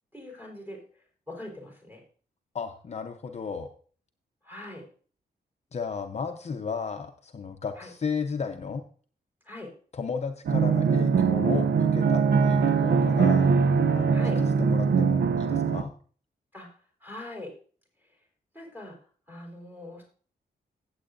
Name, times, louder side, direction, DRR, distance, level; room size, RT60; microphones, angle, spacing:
voice 1, 0.1-0.8 1.3-2.0 4.4-4.8 7.8-7.9 9.4-9.7 14.1-14.4 16.5-16.7 17.0-17.5 18.5-18.9 19.3-20.0, left 1 dB, 10° right, 0 dB, 4.1 m, -41 dB
voice 2, 2.5-3.7 5.7-8.8 9.9-13.5 13.9-15.9, left 5 dB, 40° left, 5 dB, 0.7 m, -34 dB
sound 1, 10.5-15.8, right 5 dB, 85° right, 0.7 m, -22 dB
15.5 x 7.9 x 2.6 m, 0.42 s
wide cardioid pair, 155°, 17 cm